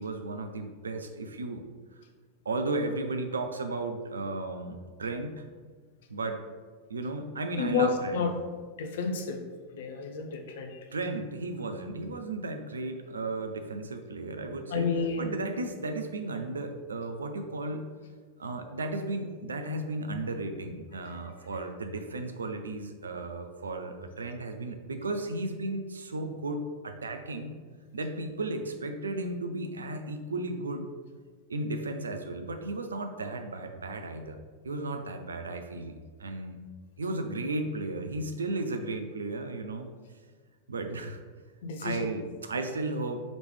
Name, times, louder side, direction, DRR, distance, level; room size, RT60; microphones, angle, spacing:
voice 1, 0.0-1.6 2.4-5.4 6.1-6.4 6.9-8.2 10.9-17.9 18.4-27.5 27.9-30.9 31.5-34.4 34.6-36.6 37.0-39.9 40.7-41.2 41.8-43.2, right 2 dB, 70° right, 6 dB, 0.4 m, -34 dB
voice 2, 7.6-8.3 8.8-9.4 9.7-10.9 14.7-15.4 21.1-21.2 41.6-42.1, left 5 dB, 55° left, 4 dB, 0.6 m, -30 dB
5.0 x 3.1 x 3.3 m, 1.5 s
figure-of-eight pair, 90°, 0 cm